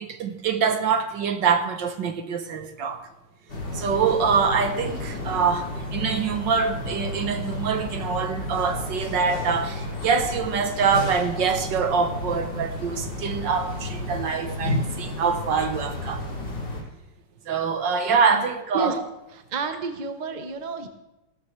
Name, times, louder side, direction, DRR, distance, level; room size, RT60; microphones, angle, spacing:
voice 1, 0.0-3.0 3.7-16.2 17.5-19.0, right 6 dB, 65° right, 1.5 m, -24 dB
sound 1, 3.5-16.8, left 1 dB, 75° left, 3.7 m, -32 dB
voice 2, 19.5-20.9, right 4 dB, 40° right, 0.6 m, -29 dB
16.5 x 13.0 x 3.2 m
omnidirectional pair, 2.4 m